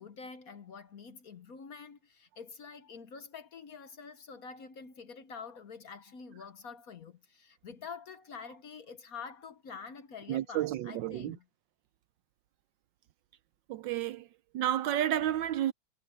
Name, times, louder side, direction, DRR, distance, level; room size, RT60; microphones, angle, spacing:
voice 1, 0.0-11.4, left 5 dB, 50° left, 1.2 m, -47 dB
voice 2, 10.3-11.4 13.7-14.3 14.5-15.7, right 12 dB, 75° right, 1.2 m, -31 dB
omnidirectional pair, 2.3 m